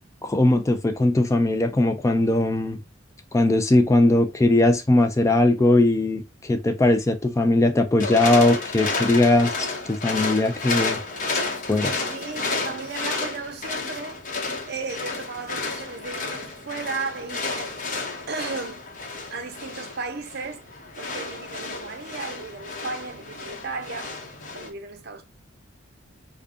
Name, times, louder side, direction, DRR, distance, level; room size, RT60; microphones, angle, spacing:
voice 1, 0.2-2.8 3.3-11.0 11.7-12.0, left 2 dB, 15° left, 0.3 m, -20 dB
sound 1, 8.0-24.7, left 3 dB, 40° left, 0.8 m, -31 dB
voice 2, 12.1-14.2 14.6-17.7 18.3-18.9 19.3-20.6 21.0-24.1 24.5-25.2, right 4 dB, 55° right, 0.6 m, -35 dB
5.1 x 2.2 x 2.4 m
head